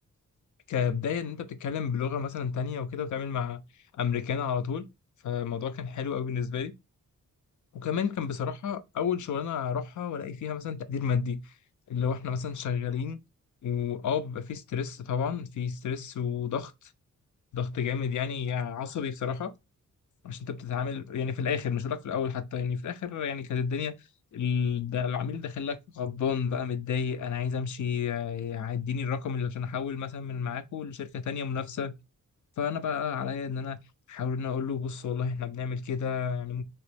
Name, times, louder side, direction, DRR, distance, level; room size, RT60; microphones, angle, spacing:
voice 1, 0.7-3.6 3.9-4.9 5.2-6.7 7.7-11.5 11.9-13.2 13.6-16.9 17.5-19.5 20.2-23.9 24.3-31.9 32.6-33.8 34.1-36.6, left 7 dB, 70° left, 0.5 m, -31 dB
3.1 x 2.9 x 3.3 m
wide cardioid pair, 110°, 31 cm